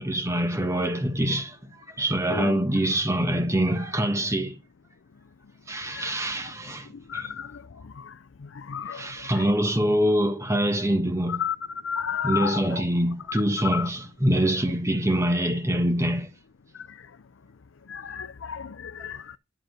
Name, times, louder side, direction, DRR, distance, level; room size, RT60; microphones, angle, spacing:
voice 1, 0.0-4.6 5.7-7.3 8.9-11.4 12.2-16.3 19.0-19.1, right 1 dB, 15° right, 1.4 m, -25 dB
voice 2, 7.1-7.6 8.0-8.1 8.6-9.1 9.4-9.5 11.3-11.6 11.8-12.9 13.7-13.9 17.9-19.4, left 8 dB, 80° left, 0.5 m, -32 dB
10.5 x 6.3 x 4.6 m
head